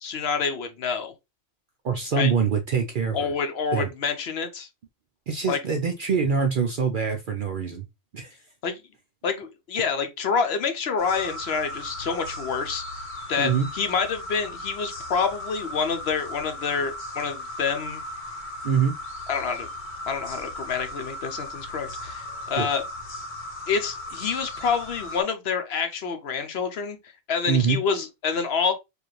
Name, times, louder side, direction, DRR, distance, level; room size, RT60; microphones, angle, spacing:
voice 1, 0.0-1.1 2.2-2.3 3.1-4.7 5.5-5.6 8.6-8.8 9.2-12.8 13.3-18.0 19.3-19.7 20.1-22.8 23.7-28.7, left 5 dB, 60° left, 0.8 m, -27 dB
voice 2, 1.8-3.3 3.7-3.9 5.3-7.8 8.1-8.4 13.4-13.7 18.6-19.0 22.6-22.7 27.5-27.8, right 6 dB, 60° right, 0.5 m, -24 dB
sound 1, 11.0-25.2, left 1 dB, 40° left, 1.1 m, -37 dB
4.7 x 2.5 x 3.0 m
omnidirectional pair, 1.3 m